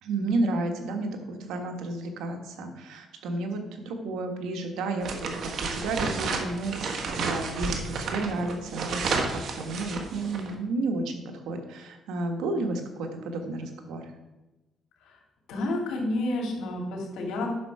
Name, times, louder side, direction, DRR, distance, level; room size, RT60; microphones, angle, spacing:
voice 1, 0.0-9.0 9.3-14.1, right 2 dB, 90° right, 4 dB, 1.5 m, -32 dB
sound 1, 5.0-10.5, right 4 dB, 65° right, 1.5 m, -31 dB
voice 2, 15.5-17.5, left 2 dB, 85° left, 0 dB, 2.6 m, -30 dB
10.0 x 6.5 x 4.8 m, 1.1 s
cardioid pair, 90°, 0 cm